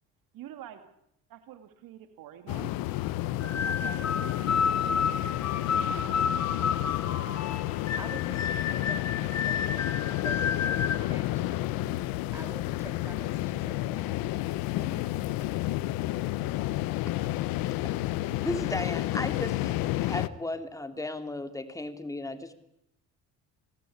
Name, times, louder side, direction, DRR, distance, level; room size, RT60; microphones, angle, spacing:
voice 1, 0.3-0.8 1.3-2.7 3.4-4.3 5.1-5.2, right 11 dB, 75° right, 9 dB, 2.6 m, -46 dB
sound 1, 2.5-20.3, left 16 dB, 85° left, 1.1 m, -31 dB
sound 2, 3.4-11.0, left 6 dB, 50° left, 2.1 m, -30 dB
voice 2, 8.0-14.1 14.8-15.1, right 2 dB, 10° right, 7 dB, 2.2 m, -47 dB
voice 3, 18.2-19.8 20.0-22.5, left 2 dB, 10° left, 8 dB, 2.8 m, -35 dB
28.5 x 18.5 x 8.7 m, 0.80 s
cardioid pair, 105°, 34 cm